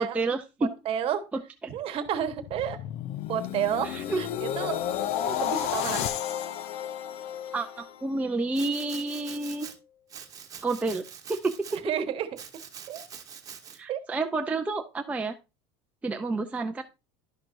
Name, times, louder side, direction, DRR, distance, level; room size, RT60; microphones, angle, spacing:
voice 1, 0.0-0.7 1.3-1.7 3.8-4.2 5.3-5.4 7.5-9.7 10.6-11.0 11.3-11.5 13.7-15.3 16.0-16.8, right 3 dB, 10° right, 3 dB, 0.5 m, -29 dB
voice 2, 0.8-1.2 1.7-2.8 3.3-4.8 5.3-6.1 11.7-12.3 12.9-13.0 13.9-14.0, right 9 dB, 45° right, 9 dB, 1.2 m, -30 dB
sound 1, 2.1-8.3 8.7-9.0, left 10 dB, 55° left, 0.7 m, -32 dB
Domestic sounds home sounds, 8.5-9.8 10.1-11.8 12.4-13.8, right 7 dB, 25° right, 1.2 m, -44 dB
11.5 x 5.9 x 2.6 m, 0.27 s
supercardioid pair, 125°, 13 cm